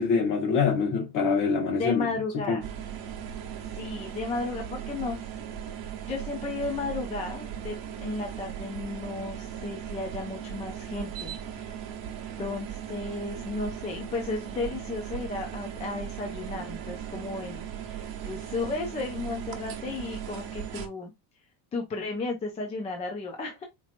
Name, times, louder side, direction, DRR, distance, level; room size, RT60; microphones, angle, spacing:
voice 1, 0.0-2.1 2.5-2.6, left 5 dB, 40° left, 1.4 m, -25 dB
voice 2, 1.8-2.6 3.8-5.2 6.1-11.7 12.4-21.1 21.7-23.6, left 3 dB, 15° left, 0.4 m, -34 dB
sound 1, 2.6-20.9, right 9 dB, 50° right, 1.1 m, -38 dB
4.3 x 2.9 x 2.4 m
cardioid pair, 170°, 47 cm